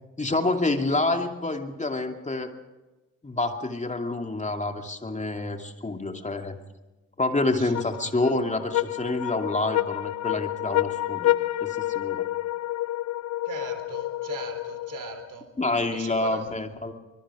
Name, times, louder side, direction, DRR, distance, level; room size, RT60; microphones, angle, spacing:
voice 1, 0.2-2.5 3.2-6.6 7.2-11.3 11.6-12.3 15.6-16.9, left 2 dB, 15° left, 5 dB, 2.6 m, -28 dB
sound 1, 7.7-15.3, left 15 dB, 45° left, 0.6 m, -29 dB
voice 2, 13.5-15.5 15.9-16.4, right 5 dB, 50° right, 7 dB, 3.9 m, -39 dB
24.5 x 21.5 x 5.0 m, 1.1 s
hypercardioid pair, 50°, 40 cm